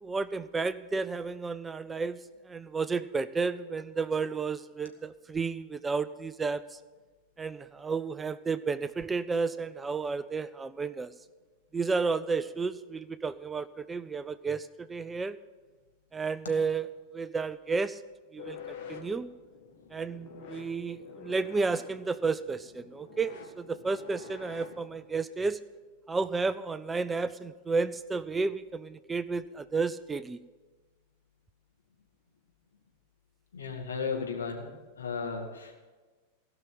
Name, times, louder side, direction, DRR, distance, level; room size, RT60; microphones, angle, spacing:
voice 1, 0.0-2.2 2.5-6.8 7.4-11.1 11.7-15.4 16.1-16.9 17.1-18.0 18.3-19.3 19.9-25.6 26.1-30.4, right 4 dB, 15° right, 15 dB, 0.4 m, -32 dB
sound 1, 18.4-25.1, left 5 dB, 50° left, 1.8 m, -47 dB
voice 2, 33.5-35.8, left 5 dB, 70° left, 1 dB, 2.1 m, -35 dB
16.5 x 5.9 x 8.9 m, 1.3 s
figure-of-eight pair, 90°, 0 cm